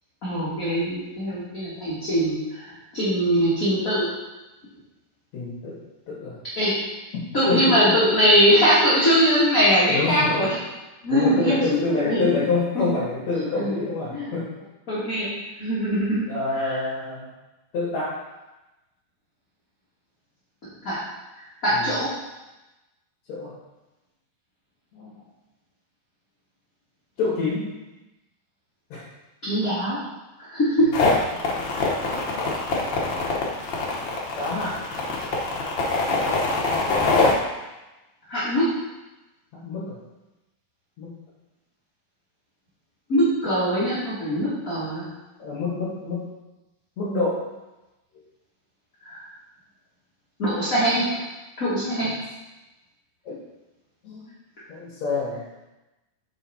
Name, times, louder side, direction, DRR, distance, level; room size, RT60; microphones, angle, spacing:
voice 1, 0.2-4.1 6.5-6.7 7.3-10.5 11.0-12.3 12.7-12.9 13.6-13.7 14.1-14.3 14.9-15.3 15.6-16.2 16.5-16.8 20.8-21.0 21.6-22.1 29.4-30.0 30.4-30.9 35.9-36.1 38.3-38.6 43.1-45.1 49.0-49.2 50.4-51.2 51.6-52.1, equal, 35° left, -10 dB, 1.5 m, -22 dB
voice 2, 5.3-5.8 6.1-6.4 7.5-7.8 9.9-10.3 11.1-14.5 16.3-17.3 17.7-18.2 21.7-21.9 23.3-23.5 24.9-25.2 27.2-27.8 28.9-29.0 30.9-31.4 31.8-32.6 33.0-33.6 34.4-34.8 39.5-40.0 41.0-41.1 45.4-46.3 47.0-47.5 53.2-53.4 54.0-54.3 54.7-55.4, left 3 dB, 55° left, -9 dB, 2.7 m, -27 dB
sound 1, 30.9-37.3, left 3 dB, 90° left, 1.0 m, -23 dB
7.0 x 5.5 x 4.3 m, 1.0 s
omnidirectional pair, 4.0 m